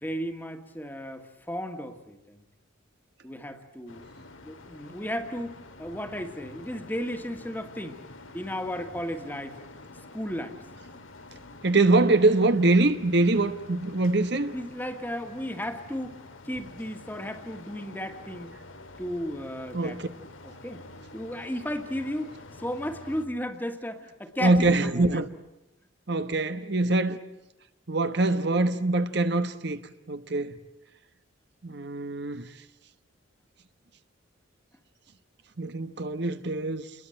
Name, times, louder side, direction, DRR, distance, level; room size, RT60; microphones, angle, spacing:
voice 1, 0.0-2.4 3.2-4.0 4.4-8.0 8.3-9.6 10.1-10.6 14.5-16.2 16.4-18.5 19.0-20.0 20.6-20.8 21.1-22.3 22.6-25.2, equal, 10° left, 1.8 m, -34 dB
sound 1, 3.9-23.3, left 2 dB, 75° left, 2.3 m, -48 dB
voice 2, 11.6-14.5 19.7-20.1 24.4-25.3 26.1-27.2 27.9-29.8 30.1-30.6 31.6-32.5 35.6-36.9, right 2 dB, 55° right, 1.2 m, -24 dB
29.0 x 22.0 x 9.0 m
head